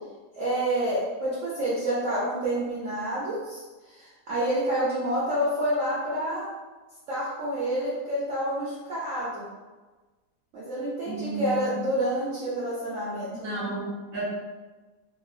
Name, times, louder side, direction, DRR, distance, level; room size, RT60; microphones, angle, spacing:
voice 1, 0.3-6.5 7.1-9.5 10.5-13.7, right 1 dB, 65° right, -8 dB, 0.9 m, -28 dB
voice 2, 11.0-11.7 13.4-14.2, right 3 dB, 15° right, -8 dB, 0.9 m, -33 dB
2.8 x 2.7 x 2.3 m, 1.3 s
omnidirectional pair, 1.8 m